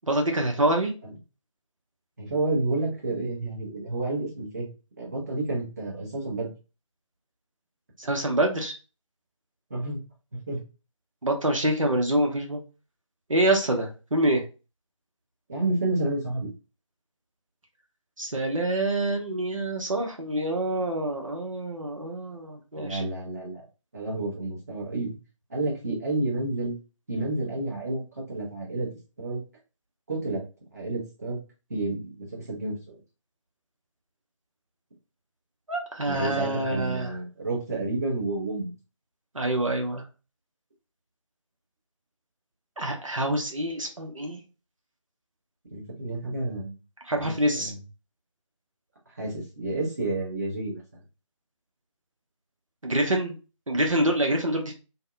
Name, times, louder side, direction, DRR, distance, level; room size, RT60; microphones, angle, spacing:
voice 1, 0.0-0.9 8.0-8.7 11.2-12.6 13.3-14.4 18.2-23.0 35.7-37.2 39.3-40.0 42.8-44.4 47.0-47.7 52.8-53.3 53.7-54.7, right 1 dB, 75° right, 1 dB, 0.7 m, -26 dB
voice 2, 2.2-4.7 5.0-6.5 9.7-10.0 10.3-10.6 15.5-16.5 22.8-23.6 23.9-25.2 25.5-26.7 27.1-28.0 28.3-28.9 29.2-29.4 30.1-30.4 30.7-31.4 31.7-33.0 36.1-38.7 45.7-46.8 47.1-47.8 49.1-51.0, right 2 dB, 30° right, -4 dB, 0.8 m, -30 dB
2.6 x 2.1 x 2.4 m, 0.32 s
figure-of-eight pair, 160°, 17 cm